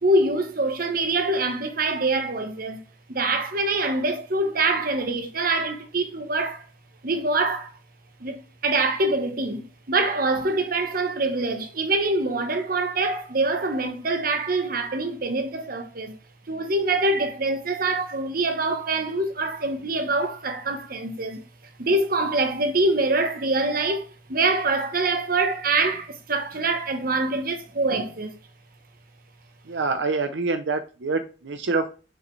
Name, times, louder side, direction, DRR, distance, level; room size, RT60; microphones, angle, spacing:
voice 1, 0.0-2.8 3.1-6.6 7.0-7.7 8.2-16.2 16.5-21.4 21.8-28.3, right 2 dB, 55° right, 1.2 m, -25 dB
voice 2, 29.7-31.9, right 3 dB, 85° right, 0.7 m, -26 dB
6.3 x 4.9 x 3.2 m
head